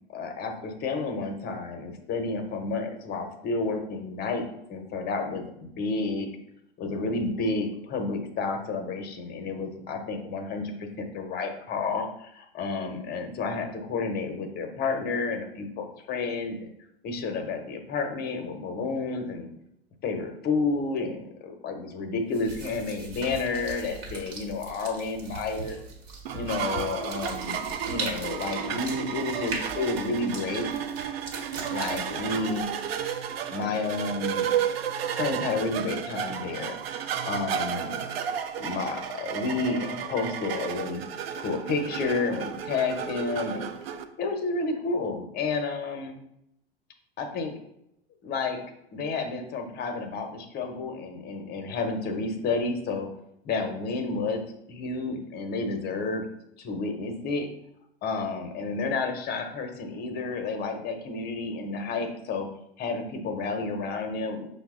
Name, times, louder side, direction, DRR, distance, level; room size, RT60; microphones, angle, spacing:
voice 1, 0.1-6.3 6.8-16.7 17.0-19.5 20.0-25.8 26.3-30.7 31.7-32.6 33.5-34.5 35.1-38.0 38.6-41.0 41.3-43.7 44.2-46.2 47.2-47.6 48.2-48.6 48.9-53.1 53.4-54.4 54.7-56.3 56.6-57.5 58.0-62.5 62.8-64.5, left 3 dB, 30° left, 5 dB, 0.8 m, -31 dB
sound 1, 22.3-33.5, right 3 dB, 50° right, 1.1 m, -40 dB
sound 2, 26.3-44.0, right 9 dB, 70° right, 0.5 m, -32 dB
5.7 x 2.1 x 3.6 m, 0.79 s
hypercardioid pair, 90°, 31 cm